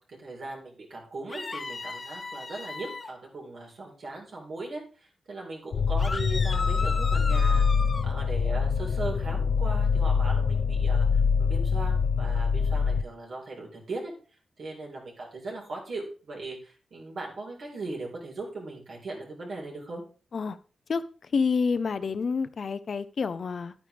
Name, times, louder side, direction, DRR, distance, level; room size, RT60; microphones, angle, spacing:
voice 1, 0.1-7.6 8.0-14.1 14.6-20.0, right 2 dB, 55° right, -1 dB, 4.3 m, -39 dB
sound 1, 1.3-3.1 6.0-8.1, left 3 dB, 35° left, 1.2 m, -35 dB
sound 2, 5.7-13.0, left 5 dB, 85° left, 0.5 m, -24 dB
voice 2, 21.3-23.7, left 5 dB, 50° left, 13 dB, 0.7 m, -28 dB
11.0 x 9.3 x 3.5 m, 0.37 s
wide cardioid pair, 140°, 0 cm